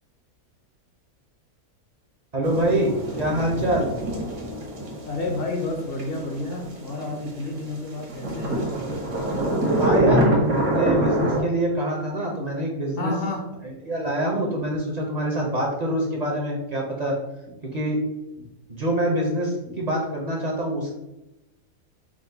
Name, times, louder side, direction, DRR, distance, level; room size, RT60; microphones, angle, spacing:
voice 1, 2.3-2.9 3.2-3.9 9.8-13.1 13.9-17.1 17.6-18.0 18.7-20.9, right 1 dB, 45° right, -1 dB, 0.5 m, -25 dB
sound 1, 2.4-7.7 8.0-11.4, right 1 dB, 80° right, 1.5 m, -25 dB
voice 2, 5.1-8.7 13.0-13.4 18.4-18.5 19.7-19.8, left 2 dB, 55° left, 1 dB, 0.7 m, -30 dB
4.9 x 2.1 x 3.9 m, 0.95 s
omnidirectional pair, 1.5 m